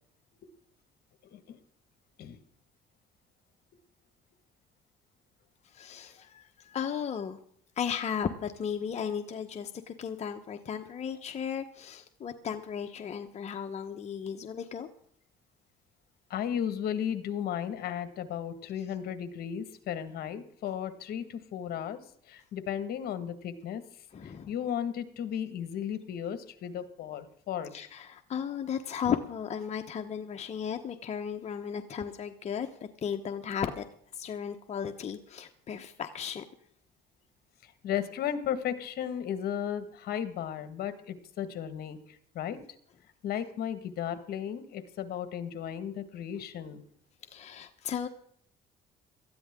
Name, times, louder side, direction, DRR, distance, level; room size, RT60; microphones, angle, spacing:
voice 1, 5.6-7.4 7.8-14.9 24.1-24.5 27.7-32.7 33.0-33.8 34.1-36.4 47.3-48.1, left 7 dB, 40° left, 6 dB, 1.1 m, -35 dB
voice 2, 16.3-22.0 22.3-23.8 24.2-27.7 37.6-42.0 42.3-42.6 43.2-46.8, left 9 dB, 65° left, 11 dB, 1.9 m, -35 dB
19.0 x 13.5 x 3.8 m, 0.64 s
cardioid pair, 110°, 17 cm